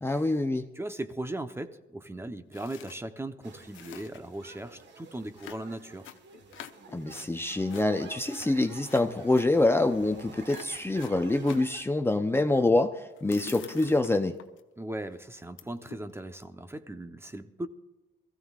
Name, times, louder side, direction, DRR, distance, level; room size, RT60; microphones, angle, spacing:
voice 1, 0.0-0.6 6.9-14.3, left 2 dB, 10° left, 6 dB, 0.7 m, -26 dB
voice 2, 0.7-6.0 14.8-17.7, right 1 dB, 10° right, 9 dB, 0.9 m, -38 dB
sound 1, 2.5-3.0 3.3-3.4 3.6-4.4 5.4-7.3 7.7-9.5 10.0-10.2 10.5-11.7 13.1-14.6 15.0-15.2 15.6-16.1, left 10 dB, 80° left, 0.9 m, -46 dB
sound 2, 3.4-11.8, right 5 dB, 65° right, 1.5 m, -50 dB
23.0 x 15.0 x 2.4 m, 1.0 s
cardioid pair, 90°, 20 cm